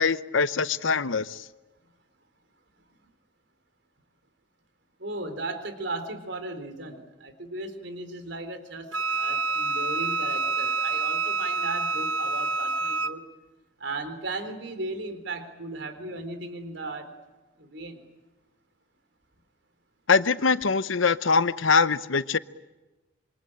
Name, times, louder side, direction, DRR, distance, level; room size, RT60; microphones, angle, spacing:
voice 1, 0.0-1.4 20.1-22.4, left 5 dB, 80° left, 0.8 m, -23 dB
voice 2, 5.0-8.9 9.2-13.2 13.8-17.1 17.6-18.0, right 2 dB, 65° right, 3.8 m, -36 dB
Wind instrument woodwind instrument, 8.9-13.2, right 3 dB, 80° right, 1.1 m, -27 dB
27.0 x 24.0 x 8.9 m
head